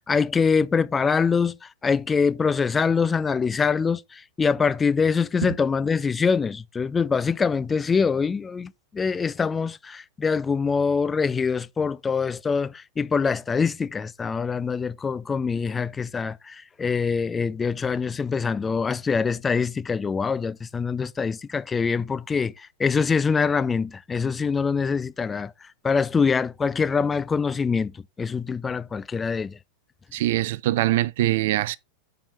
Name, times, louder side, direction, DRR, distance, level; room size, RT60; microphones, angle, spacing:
voice 1, 0.1-1.5 1.8-25.5 25.8-27.9 28.2-29.6, left 5 dB, 15° left, 0.4 m, -24 dB
voice 2, 30.1-31.8, right 15 dB, 55° right, 0.4 m, -23 dB
7.1 x 4.8 x 4.4 m
figure-of-eight pair, 90°, 0 cm